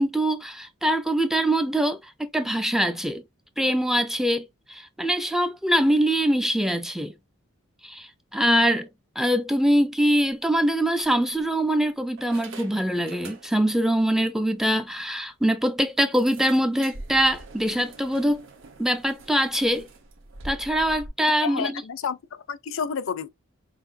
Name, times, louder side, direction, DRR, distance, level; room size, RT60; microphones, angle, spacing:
voice 1, 0.0-3.2 3.6-7.1 7.8-8.9 9.2-18.4 18.8-19.9 20.4-21.8, equal, ahead, 0.4 m, -23 dB
sound 1, 10.1-10.3 11.0-11.7 12.2-13.8 14.1-14.3 14.7-14.8 15.1-15.2 16.1-21.1, right 2 dB, 60° right, 1.0 m, -44 dB
voice 2, 21.4-23.3, left 6 dB, 65° left, 0.4 m, -30 dB
5.7 x 2.5 x 2.6 m
head